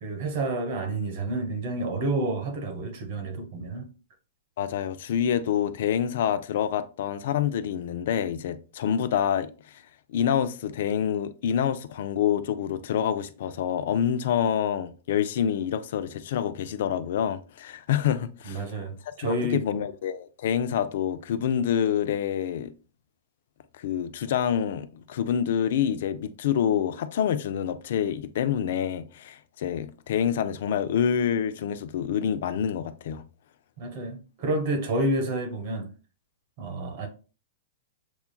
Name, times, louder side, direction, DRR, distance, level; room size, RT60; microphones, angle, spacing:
voice 1, 0.0-3.9 18.5-19.6 33.8-35.9 36.6-37.1, right 2 dB, 55° right, 1.2 m, -29 dB
voice 2, 4.6-9.5 10.1-18.8 19.2-22.7 23.7-33.2, left 9 dB, 65° left, 0.4 m, -27 dB
6.9 x 2.3 x 2.2 m
hypercardioid pair, 130°, 0 cm